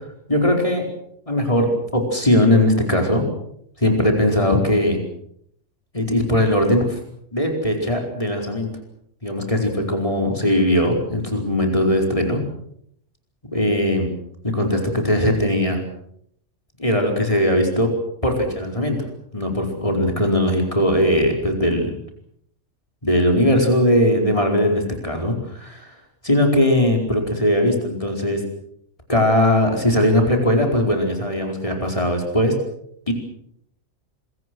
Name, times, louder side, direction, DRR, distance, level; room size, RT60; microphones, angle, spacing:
voice 1, 0.3-0.9 1.3-3.2 3.8-5.0 5.9-7.0 7.3-8.7 9.2-12.4 13.5-14.1 14.4-15.8 16.8-17.9 18.2-19.0 19.3-21.9 23.0-25.9 26.2-28.4 29.1-32.5 33.1-33.2, left 1 dB, 25° left, 2 dB, 4.9 m, -19 dB
27.0 x 23.5 x 6.3 m, 0.71 s
omnidirectional pair, 1.3 m